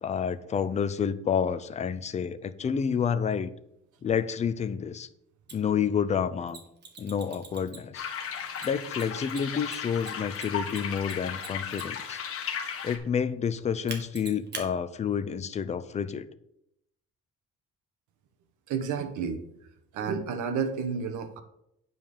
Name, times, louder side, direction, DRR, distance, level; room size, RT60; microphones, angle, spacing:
voice 1, 0.0-3.5 4.0-5.1 5.5-6.6 7.0-8.1 8.6-12.2 12.8-16.3, left 7 dB, 25° left, 12 dB, 0.5 m, -29 dB
Mechanisms, 5.5-5.6 6.5-8.0 8.6-12.1 13.9-14.7, right 4 dB, 35° right, 1.9 m, -42 dB
sound 1, 7.9-13.0, left 7 dB, 45° left, 1.5 m, -35 dB
voice 2, 18.7-19.4 19.9-21.4, right 6 dB, 75° right, 7 dB, 1.3 m, -31 dB
9.2 x 5.5 x 6.6 m, 0.78 s
cardioid pair, 160°, 30 cm